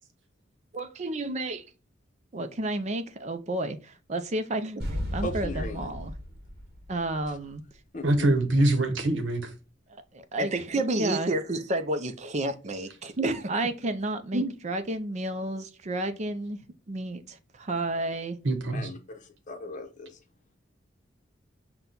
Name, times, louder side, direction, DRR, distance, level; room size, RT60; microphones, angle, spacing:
voice 1, 0.7-1.6 2.3-6.1 6.9-7.6 10.1-16.6 16.9-18.4, right 2 dB, 40° right, 0.5 m, -30 dB
sound 1, 4.8-7.8, equal, 55° right, 1.1 m, -35 dB
voice 2, 5.2-5.9 7.9-8.0 18.7-19.2 19.5-20.1, left 1 dB, 40° left, 0.7 m, -37 dB
voice 3, 8.0-9.5 18.4-18.9, right 1 dB, 75° right, 1.0 m, -24 dB
5.9 x 2.2 x 3.8 m
head